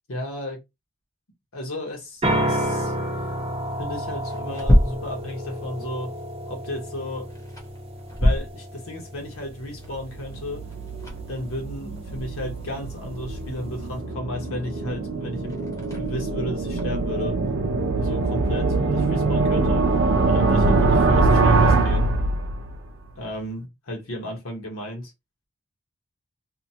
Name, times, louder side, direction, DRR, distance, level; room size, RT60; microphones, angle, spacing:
voice 1, 0.1-0.6 1.5-2.9 3.8-6.1 6.5-7.3 8.2-10.6 11.3-17.4 18.0-19.9 20.3-22.1 23.2-25.1, left 1 dB, 75° left, 1.1 m, -34 dB
sound 1, 2.0-19.2, equal, 15° left, 0.8 m, -30 dB
sound 2, 2.2-14.0, equal, 25° right, 0.8 m, -32 dB
sound 3, 9.9-22.9, right 3 dB, 75° right, 0.5 m, -23 dB
2.8 x 2.2 x 2.7 m
head